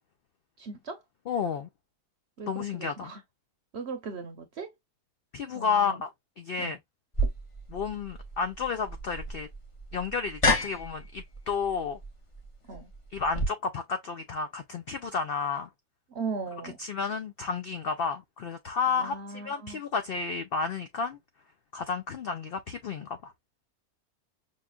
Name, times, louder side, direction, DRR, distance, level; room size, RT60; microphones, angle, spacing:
voice 1, 0.6-1.0 2.4-3.2 3.7-4.7 5.5-6.0 6.6-6.8 12.7-12.9 16.1-16.8 18.9-19.8, right 4 dB, 55° right, 0.9 m, -38 dB
voice 2, 1.3-1.7 2.5-3.1 5.3-6.1 6.4-6.8 7.7-9.5 9.9-12.0 13.1-15.7 16.8-21.2 21.7-23.3, left 5 dB, 90° left, 0.5 m, -31 dB
sound 1, 7.1-13.5, left 1 dB, 30° left, 0.7 m, -32 dB
5.5 x 2.3 x 2.3 m
omnidirectional pair, 1.6 m